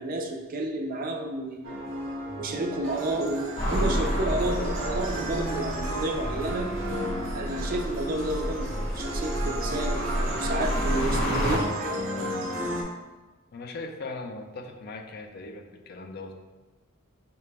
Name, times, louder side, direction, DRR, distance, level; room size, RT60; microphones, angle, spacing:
voice 1, 0.0-1.8 2.4-6.7 7.3-12.3, right 2 dB, 45° right, 2 dB, 0.5 m, -31 dB
sound 1, 1.6-12.8, equal, 75° right, 0.8 m, -34 dB
sound 2, 2.8-11.4, equal, ahead, 0.6 m, -48 dB
sound 3, 3.6-11.6, equal, 35° left, 0.8 m, -30 dB
voice 2, 13.5-16.4, left 3 dB, 50° left, 5 dB, 0.4 m, -39 dB
4.8 x 2.2 x 3.3 m, 1.2 s
head